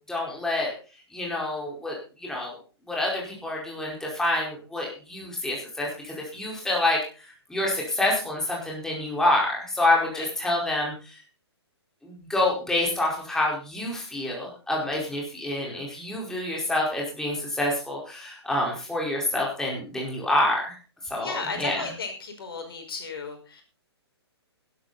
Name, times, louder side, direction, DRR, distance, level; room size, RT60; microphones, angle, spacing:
voice 1, 0.1-0.7 1.1-2.6 2.9-7.0 7.5-10.9 12.0-20.7 21.1-21.9, left 1 dB, 5° left, -3 dB, 4.9 m, -27 dB
voice 2, 21.2-23.6, left 4 dB, 55° left, 4 dB, 5.7 m, -35 dB
15.5 x 12.5 x 4.3 m, 0.36 s
figure-of-eight pair, 125°, 14 cm